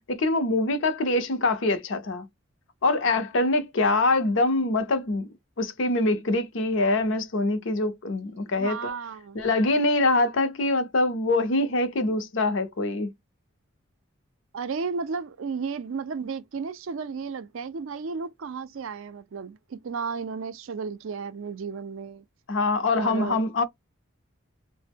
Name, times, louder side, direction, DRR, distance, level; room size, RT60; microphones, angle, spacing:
voice 1, 0.1-2.3 2.8-5.3 5.6-8.9 9.3-13.1 22.5-23.6, left 2 dB, 60° left, 0.6 m, -24 dB
voice 2, 8.6-9.4 14.5-22.2 23.0-23.4, right 5 dB, 70° right, 0.4 m, -33 dB
2.9 x 2.0 x 3.4 m
head